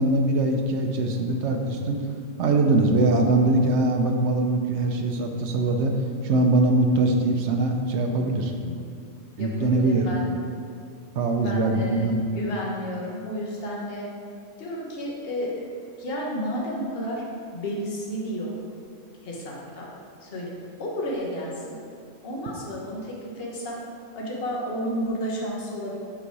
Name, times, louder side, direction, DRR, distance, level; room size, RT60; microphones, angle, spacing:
voice 1, 0.0-2.1 2.4-8.5 9.4-10.1 11.1-12.3, right 2 dB, 65° right, 3 dB, 0.9 m, -22 dB
voice 2, 9.4-10.3 11.3-14.1 14.6-15.6 16.0-17.2 17.5-18.6 19.2-19.9 20.2-20.5 20.8-21.6 22.2-23.8 24.1-26.0, equal, 50° left, -3 dB, 1.2 m, -32 dB
6.0 x 4.0 x 4.7 m, 2.3 s
omnidirectional pair, 1.3 m